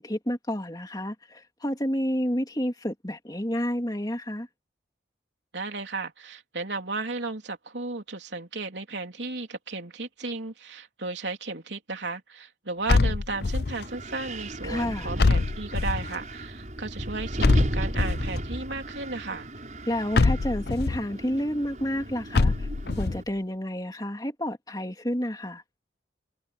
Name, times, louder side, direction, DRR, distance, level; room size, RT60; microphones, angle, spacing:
voice 1, 0.0-4.5 14.6-15.1 19.9-22.7 23.0-25.6, equal, 20° left, 3.0 m, -30 dB
voice 2, 5.5-19.5, right 3 dB, 80° right, 3.4 m, -34 dB
sound 1, 12.9-13.8 15.2-16.2 17.4-18.4 20.1-21.0 22.3-23.2, left 3 dB, 60° left, 0.6 m, -23 dB
Wind, 13.3-23.2, equal, 40° right, 7.6 m, -34 dB
head